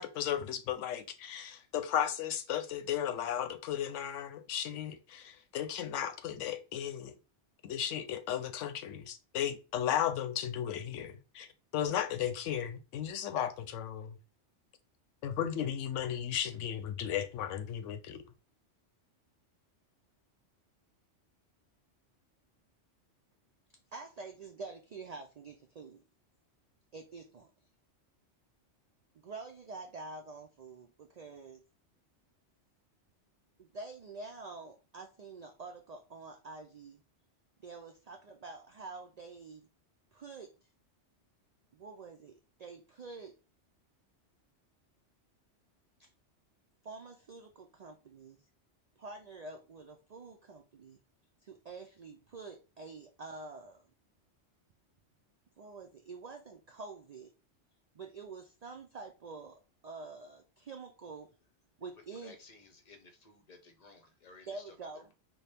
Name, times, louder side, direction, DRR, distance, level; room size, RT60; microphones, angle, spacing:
voice 1, 0.0-7.2 7.6-11.5 11.7-14.1 15.2-18.2, left 10 dB, 85° left, 0.9 m, -35 dB
voice 2, 23.9-26.0 26.9-27.5 29.2-31.6 33.6-37.0 37.6-39.7 40.1-40.7 41.7-43.3 46.0-46.1 46.8-48.5 49.0-51.0 51.4-53.9 55.6-57.3 57.9-61.3 61.8-62.4 64.5-65.1, right 3 dB, 65° right, 0.4 m, -47 dB
voice 3, 62.2-64.7, left 4 dB, 40° left, 0.7 m, -56 dB
4.2 x 2.3 x 3.3 m
omnidirectional pair, 1.2 m